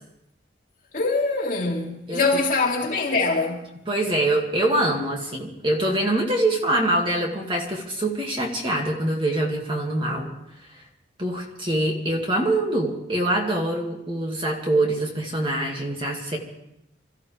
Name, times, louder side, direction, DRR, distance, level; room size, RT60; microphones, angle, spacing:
voice 1, 0.9-3.7, left 3 dB, 45° left, 3.0 m, -23 dB
voice 2, 3.9-10.3 11.2-16.4, right 1 dB, 30° right, 2.2 m, -24 dB
26.5 x 14.0 x 3.5 m
head